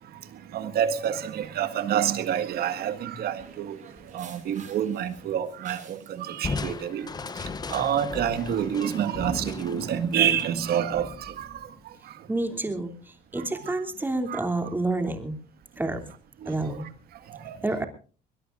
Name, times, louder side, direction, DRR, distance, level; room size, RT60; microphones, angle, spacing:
voice 1, 0.0-12.3 13.4-13.8 14.3-14.4 16.4-17.6, right 9 dB, 65° right, 1.9 m, -29 dB
sound 1, 3.4-10.4, right 6 dB, 45° right, 5.8 m, -52 dB
Crushing, 6.4-11.8, left 4 dB, 25° left, 0.7 m, -37 dB
voice 2, 12.3-15.4 15.8-16.1 16.5-16.9 17.6-17.8, right 2 dB, 10° right, 3.0 m, -29 dB
21.5 x 21.5 x 2.6 m
cardioid pair, 110°, 17 cm